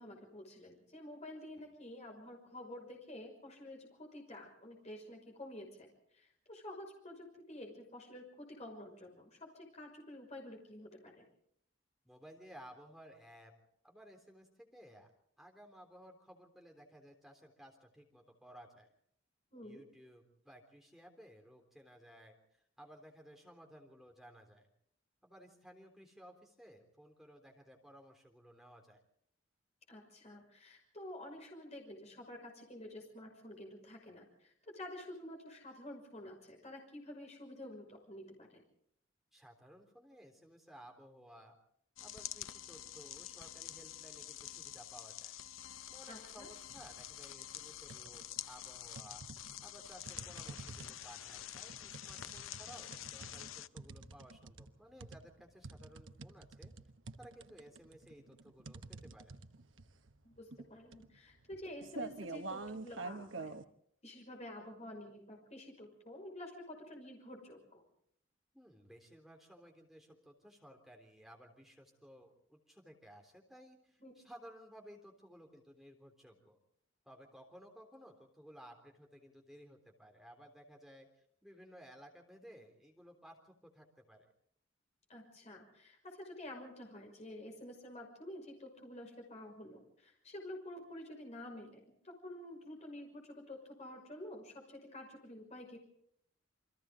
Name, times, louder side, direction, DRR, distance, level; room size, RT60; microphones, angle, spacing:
voice 1, 0.0-11.2 19.5-19.8 29.9-38.6 46.1-46.5 60.2-63.6 64.0-67.8 74.0-74.1 85.1-95.8, left 1 dB, 35° left, 1 dB, 5.8 m, -50 dB
voice 2, 12.1-13.5 13.8-15.1 15.4-18.9 19.6-24.7 25.2-29.0 39.3-41.6 42.0-45.4 45.9-49.2 49.6-56.7 57.2-59.4 68.5-76.6 77.1-81.1 81.4-84.3, equal, ahead, 2 dB, 3.5 m, -57 dB
sound 1, 42.0-53.7, left 12 dB, 90° left, 0.7 m, -48 dB
sound 2, 46.7-47.1 47.5-48.4 48.9-63.6, right 3 dB, 75° right, 1.2 m, -48 dB
29.0 x 23.5 x 3.9 m, 0.70 s
head